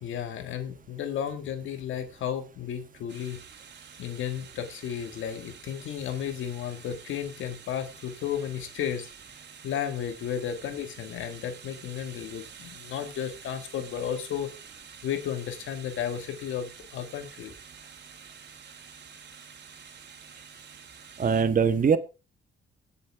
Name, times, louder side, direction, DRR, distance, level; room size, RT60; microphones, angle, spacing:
voice 1, 0.0-3.4 4.0-9.1 9.6-14.5 15.0-17.5, left 9 dB, 80° left, 7 dB, 1.9 m, -33 dB
sound 1, 3.1-21.4, right 6 dB, 60° right, 3.0 m, -49 dB
voice 2, 21.2-22.0, right 6 dB, 45° right, 11 dB, 1.4 m, -22 dB
20.0 x 6.9 x 3.5 m, 0.31 s
cardioid pair, 90°, 20 cm